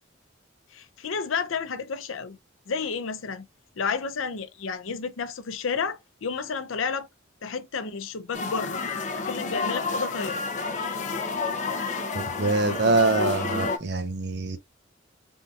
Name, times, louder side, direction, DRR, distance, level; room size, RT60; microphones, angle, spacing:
voice 1, 0.7-2.4 2.7-3.5 3.8-7.1 7.4-8.8 9.2-10.4, left 5 dB, 85° left, 0.6 m, -31 dB
sound 1, 8.3-13.8, left 4 dB, 35° left, 0.6 m, -30 dB
voice 2, 12.1-14.6, right 3 dB, 55° right, 0.7 m, -24 dB
3.6 x 2.8 x 2.4 m
head